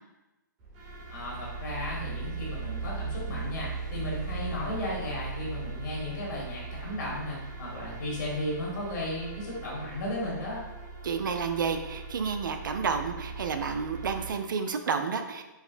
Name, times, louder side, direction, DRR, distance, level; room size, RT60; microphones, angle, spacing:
sound 1, 0.6-14.3, right 4 dB, 30° right, 1.1 m, -39 dB
voice 1, 1.1-10.6, left 1 dB, 65° left, -5 dB, 1.4 m, -35 dB
voice 2, 11.0-15.4, right 5 dB, 75° right, 7 dB, 0.4 m, -30 dB
4.8 x 2.0 x 2.5 m, 1.0 s
hypercardioid pair, 140°, 11 cm